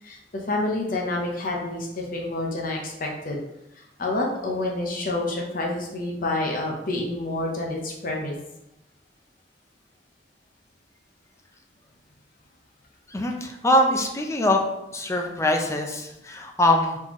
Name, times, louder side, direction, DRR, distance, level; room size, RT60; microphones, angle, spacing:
voice 1, 0.0-3.4 3.8-8.4, left 2 dB, 50° left, -1 dB, 0.8 m, -28 dB
voice 2, 13.1-14.6 14.9-17.0, left 1 dB, 15° left, 3 dB, 0.5 m, -23 dB
4.3 x 3.7 x 3.0 m, 0.87 s
head